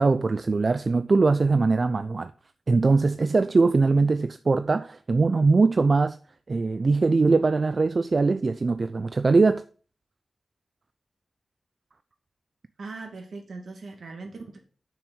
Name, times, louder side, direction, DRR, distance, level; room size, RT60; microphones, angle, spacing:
voice 1, 0.0-2.3 2.7-6.2 6.5-9.6, right 3 dB, 50° right, 0.4 m, -21 dB
voice 2, 12.8-14.6, right 3 dB, 75° right, 2.2 m, -39 dB
7.0 x 6.1 x 6.4 m
cardioid pair, 65°, 0 cm